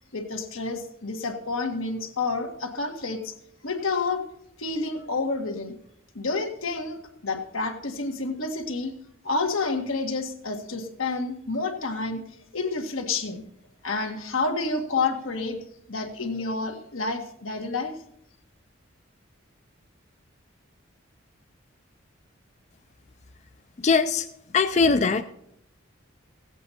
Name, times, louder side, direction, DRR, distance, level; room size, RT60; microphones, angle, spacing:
voice 1, 0.1-3.3 3.6-4.2 4.6-5.8 6.1-8.9 9.2-12.2 12.5-13.4 13.8-15.6 15.9-17.9, left 3 dB, 90° left, 4 dB, 1.7 m, -29 dB
voice 2, 23.8-24.3 24.5-25.2, left 4 dB, 35° left, 9 dB, 0.4 m, -20 dB
16.0 x 8.2 x 4.2 m, 0.75 s
head